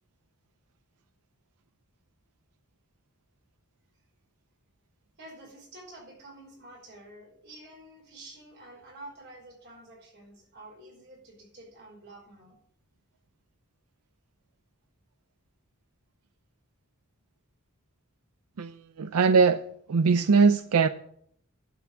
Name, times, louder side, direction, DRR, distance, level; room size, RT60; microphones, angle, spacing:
voice 1, 5.2-12.6, right 1 dB, 50° right, 5.2 m, -49 dB
voice 2, 18.6-20.9, right 5 dB, 90° right, 0.5 m, -22 dB
11.5 x 6.1 x 8.6 m
head